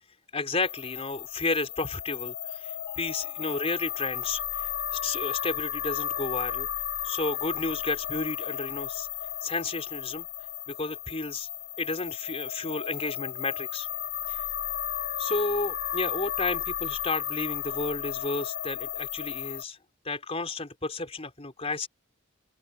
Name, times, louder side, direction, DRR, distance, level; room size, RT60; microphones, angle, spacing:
voice 1, 0.3-6.7 7.0-9.1 9.4-10.3 10.7-11.5 11.8-13.9 14.3-14.4 15.2-19.8 20.0-21.9, left 3 dB, 30° left, 3.7 m, -32 dB
sound 1, 0.6-19.6, left 10 dB, 85° left, 3.1 m, -34 dB
sound 2, 2.9-5.1, left 3 dB, 10° left, 5.0 m, -58 dB
head